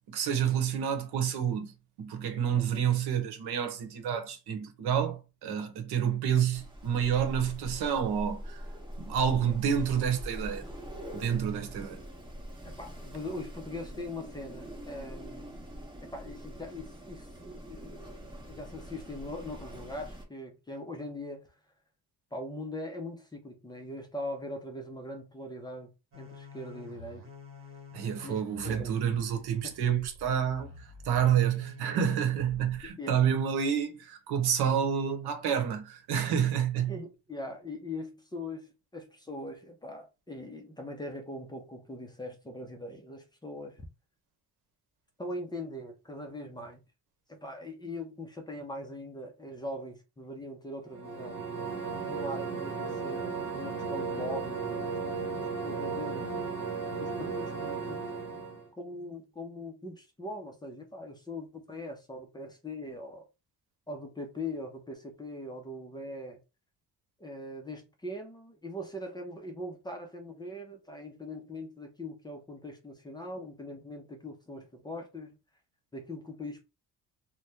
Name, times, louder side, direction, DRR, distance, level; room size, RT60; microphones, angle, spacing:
voice 1, 0.1-1.7 2.0-8.6 9.0-10.7 11.1-12.0 27.9-37.0, right 8 dB, 90° right, 0.9 m, -29 dB
Wind, 6.5-20.2, equal, 10° right, 0.9 m, -43 dB
voice 2, 12.6-15.6 16.0-21.5 22.3-27.2 28.2-28.9 29.6-29.7 33.0-33.2 36.4-36.5 36.9-43.8 45.2-46.8 47.3-51.4 51.9-56.3 57.0-58.1 58.8-63.2 63.9-66.4 67.2-75.3 75.9-76.6, left 1 dB, 10° left, 0.4 m, -41 dB
sound 1, 26.1-32.9, left 3 dB, 35° right, 1.1 m, -49 dB
sound 2, 50.9-58.7, right 4 dB, 65° right, 0.9 m, -35 dB
2.8 x 2.1 x 3.3 m
cardioid pair, 150°, 37 cm